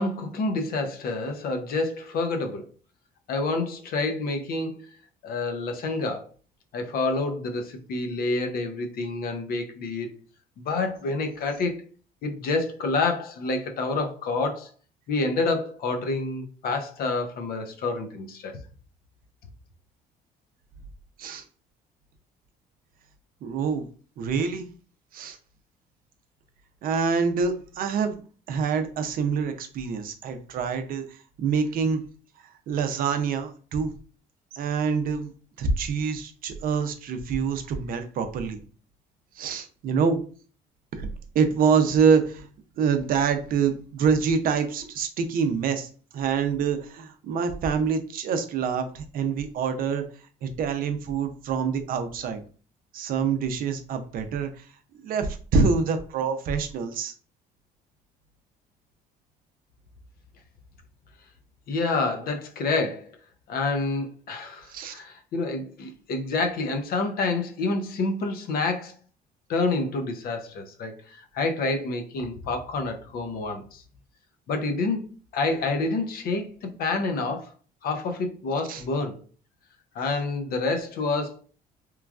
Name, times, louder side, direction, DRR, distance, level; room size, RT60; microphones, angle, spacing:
voice 1, 0.0-2.7 3.3-4.7 5.2-6.3 6.7-10.2 10.6-11.8 12.2-14.7 15.1-18.6 61.7-63.1 63.5-68.9 69.5-73.8 74.5-77.5 77.8-79.2 79.9-81.4, left 3 dB, 60° left, 0.6 m, -28 dB
voice 2, 23.4-23.9 24.2-24.7 25.1-25.4 26.8-28.2 28.5-32.0 32.7-33.9 34.5-35.3 35.6-38.6 39.4-40.2 40.9-41.1 41.3-42.5 42.8-45.9 46.1-50.0 50.4-52.4 52.9-54.7 55.0-57.1 64.7-64.9 78.7-78.8, right 5 dB, 60° right, 0.5 m, -26 dB
3.0 x 2.3 x 2.3 m
cardioid pair, 110°, 17 cm